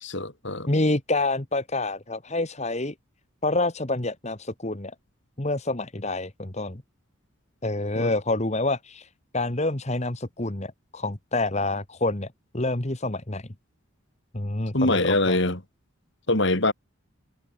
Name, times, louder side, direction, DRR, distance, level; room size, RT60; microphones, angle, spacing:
voice 1, 0.0-0.7 8.0-8.1 14.7-15.6 16.3-16.7, left 2 dB, 55° left, 3.4 m, -23 dB
voice 2, 0.7-2.9 3.4-4.9 5.4-6.8 7.6-9.1 9.3-12.3 12.5-13.5 14.3-15.4, left 2 dB, 30° left, 1.6 m, -27 dB
head